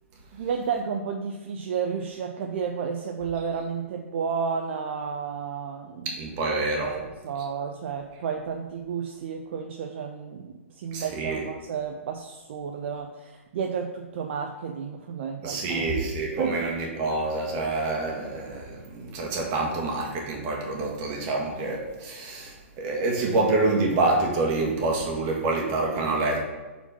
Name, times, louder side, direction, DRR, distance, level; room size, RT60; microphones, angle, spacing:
voice 1, 0.3-6.1 6.5-15.9 16.4-16.8, right 6 dB, 55° right, 3 dB, 0.6 m, -32 dB
voice 2, 6.1-7.0 10.9-11.4 15.4-26.4, right 2 dB, 35° right, 0 dB, 1.5 m, -27 dB
4.3 x 4.3 x 5.7 m, 1.2 s
hypercardioid pair, 135°, 7 cm